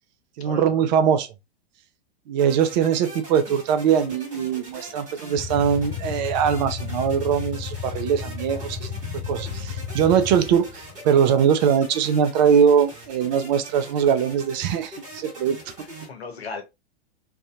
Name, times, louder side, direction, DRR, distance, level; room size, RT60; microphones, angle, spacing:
voice 1, 0.4-1.3 2.3-8.9 9.3-15.6, right 8 dB, 45° right, 0.5 m, -21 dB
sound 1, 2.4-16.1, right 1 dB, 20° right, 1.7 m, -43 dB
sound 2, 5.4-10.9, left 6 dB, 30° left, 0.7 m, -33 dB
voice 2, 15.8-16.6, left 4 dB, 75° left, 0.9 m, -38 dB
2.6 x 2.5 x 2.4 m
figure-of-eight pair, 100°, 32 cm